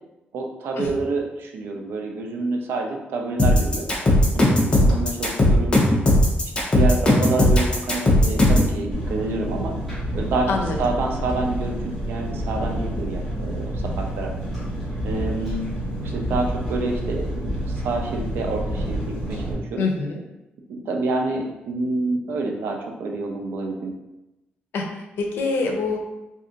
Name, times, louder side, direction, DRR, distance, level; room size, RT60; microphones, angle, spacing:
voice 1, 0.3-3.9 4.3-5.8 6.7-9.8 10.2-10.5 10.8-13.8 14.2-14.3 15.0-15.7 16.0-19.9 20.7-23.9, right 3 dB, 75° right, 1 dB, 0.5 m, -28 dB
sound 1, 3.4-8.7, left 1 dB, 25° left, 0.7 m, -17 dB
Engine, 8.9-19.5, right 1 dB, ahead, 1.3 m, -28 dB
voice 2, 19.8-20.2 24.7-26.0, left 3 dB, 75° left, 2 dB, 0.6 m, -25 dB
2.7 x 2.5 x 3.8 m, 0.97 s
wide cardioid pair, 170°, 4 cm